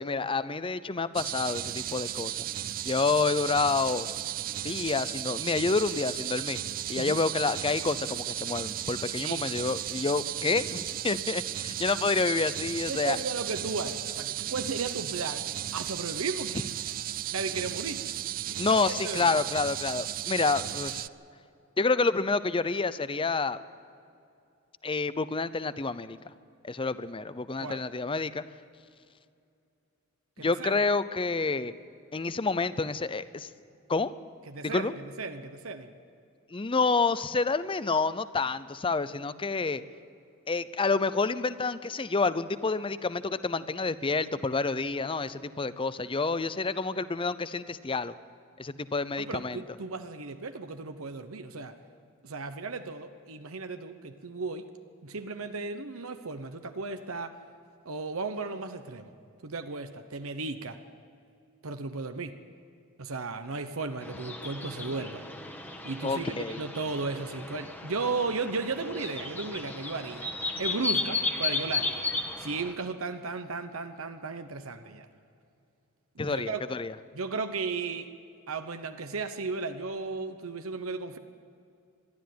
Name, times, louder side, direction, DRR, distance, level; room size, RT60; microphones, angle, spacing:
voice 1, 0.0-2.4 2.8-4.1 4.6-6.6 6.9-13.2 18.6-21.0 21.8-23.6 24.8-26.2 26.6-28.4 30.4-31.7 32.1-33.5 33.9-34.1 34.6-34.9 36.5-39.8 40.5-48.1 48.6-49.6 66.0-66.6 76.2-76.9, left 4 dB, 25° left, 15 dB, 0.6 m, -28 dB
sound 1, 1.1-21.1, right 12 dB, 40° right, 0.4 m, -35 dB
voice 2, 12.9-15.5 15.7-16.7 17.3-18.1 18.4-19.3 27.6-27.8 30.4-30.8 34.5-35.9 49.2-51.7 52.2-54.7 55.0-57.3 57.8-59.1 59.4-60.8 61.6-62.4 63.0-65.2 65.8-70.3 70.6-72.1 72.4-75.1 76.1-76.6 77.1-78.1 78.5-81.2, right 4 dB, 75° right, 8 dB, 1.0 m, -35 dB
sound 2, 64.0-72.7, left 3 dB, 10° left, 1.5 m, -34 dB
22.0 x 13.0 x 9.5 m, 2.5 s
head